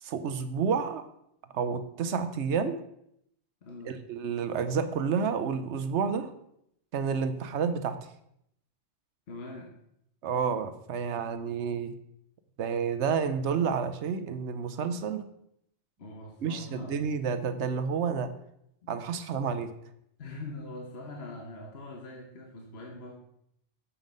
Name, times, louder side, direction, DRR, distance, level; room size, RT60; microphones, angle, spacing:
voice 1, 0.0-1.1 1.5-2.8 3.9-6.3 6.9-8.1 10.2-11.9 12.6-15.3 16.4-18.3 18.9-19.7, right 6 dB, 70° right, 10 dB, 1.0 m, -30 dB
voice 2, 3.6-4.1 9.3-9.8 14.8-14.9 16.0-17.0 18.8-19.1 20.2-23.1, left 2 dB, 55° left, 1 dB, 1.3 m, -43 dB
7.2 x 5.7 x 5.2 m, 0.76 s
omnidirectional pair, 1.3 m